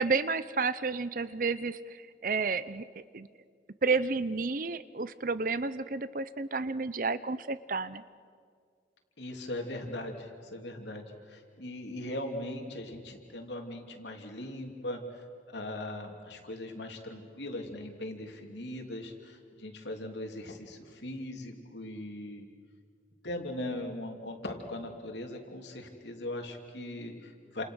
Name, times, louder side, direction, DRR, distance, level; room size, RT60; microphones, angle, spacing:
voice 1, 0.0-2.8 3.1-3.3 3.8-8.0, right 4 dB, 50° right, 15 dB, 0.7 m, -31 dB
voice 2, 9.2-22.4 23.2-27.6, left 1 dB, 80° left, 3 dB, 3.1 m, -39 dB
29.5 x 27.5 x 6.4 m, 2.1 s
head